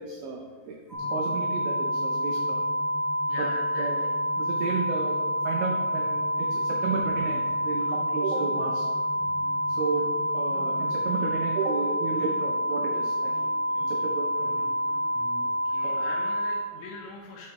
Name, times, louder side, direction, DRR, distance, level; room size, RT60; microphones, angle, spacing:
voice 1, 0.0-2.6 3.4-3.5 3.8-4.1 4.4-8.9 9.7-14.7 15.8-16.2, right 4 dB, 90° right, 1 dB, 2.5 m, -33 dB
sound 1, 0.9-10.9, left 3 dB, 65° left, 2.3 m, -45 dB
sound 2, 0.9-16.5, equal, 55° right, 1.6 m, -28 dB
voice 2, 3.3-3.9 15.4-17.5, left 3 dB, 85° left, -1 dB, 2.7 m, -41 dB
sound 3, 7.0-8.0 8.3-8.8 9.2-9.7 10.0-10.2 10.5-11.0 11.3-15.7, right 3 dB, 70° right, 3.8 m, -48 dB
8.4 x 4.3 x 3.1 m, 1.5 s
omnidirectional pair, 5.8 m